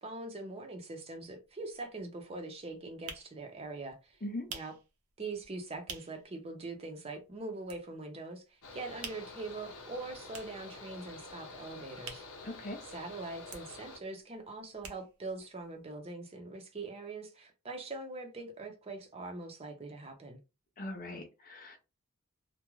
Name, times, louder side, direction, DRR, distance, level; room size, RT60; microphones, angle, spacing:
voice 1, 0.0-4.2 4.5-4.7 5.2-8.4 8.7-12.2 12.9-20.4, right 3 dB, 30° right, 0.6 m, -42 dB
sound 1, 1.2-1.3 1.6-6.3 6.7-6.8 7.0-8.2 8.5-13.1 13.3-15.4 15.7-15.8 16.0-16.1, right 6 dB, 75° right, 0.6 m, -48 dB
Mechanical fan, 8.6-14.0, left 3 dB, 75° left, 0.8 m, -48 dB
voice 2, 12.4-12.8 20.8-21.8, left 1 dB, 40° left, 0.5 m, -40 dB
2.4 x 2.1 x 3.0 m
head